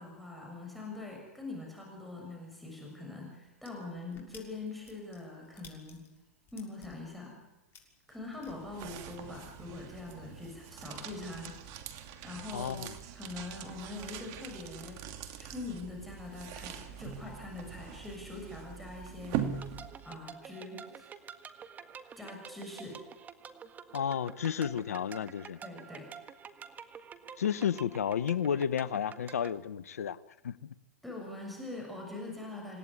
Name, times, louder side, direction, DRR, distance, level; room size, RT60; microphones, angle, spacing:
voice 1, 0.0-6.0 6.5-7.4 8.1-11.6 12.2-12.9 13.1-15.0 15.4-19.5 20.0-21.1 22.2-23.0 25.6-26.1 31.0-32.8, left 2 dB, ahead, -1 dB, 6.7 m, -43 dB
sound 1, 3.6-8.5, left 6 dB, 30° left, 6.5 m, -56 dB
sound 2, 8.1-20.3, right 9 dB, 45° right, 2.6 m, -42 dB
voice 2, 12.5-12.9 23.9-25.6 27.4-30.2 30.4-30.7, left 8 dB, 80° left, 18 dB, 1.0 m, -32 dB
sound 3, 19.6-29.5, right 7 dB, 20° right, 1.7 m, -49 dB
27.0 x 18.0 x 9.8 m, 1.1 s
hypercardioid pair, 120°, 8 cm